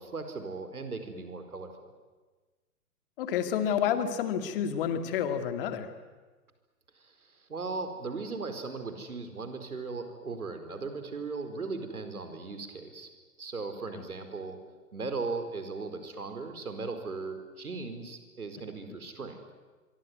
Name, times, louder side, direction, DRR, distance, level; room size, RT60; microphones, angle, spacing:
voice 1, 0.0-1.9 7.0-13.1 13.4-14.6 14.9-19.4, right 4 dB, 70° right, 8 dB, 4.6 m, -38 dB
voice 2, 3.2-5.9, left 8 dB, 35° left, 9 dB, 2.4 m, -29 dB
24.5 x 24.0 x 9.6 m, 1.3 s
figure-of-eight pair, 125°, 46 cm